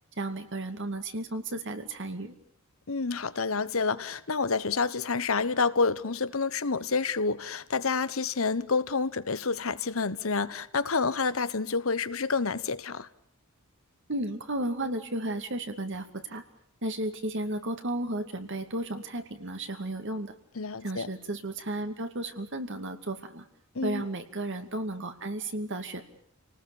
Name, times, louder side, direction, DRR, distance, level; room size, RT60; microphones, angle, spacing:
voice 1, 0.2-2.3 14.1-16.4 16.8-20.3 20.8-23.4 23.8-26.0, right 1 dB, 60° right, 2.5 m, -33 dB
voice 2, 2.9-13.1 20.6-21.1 23.7-24.0, left 4 dB, 70° left, 1.1 m, -28 dB
30.0 x 19.5 x 7.1 m
head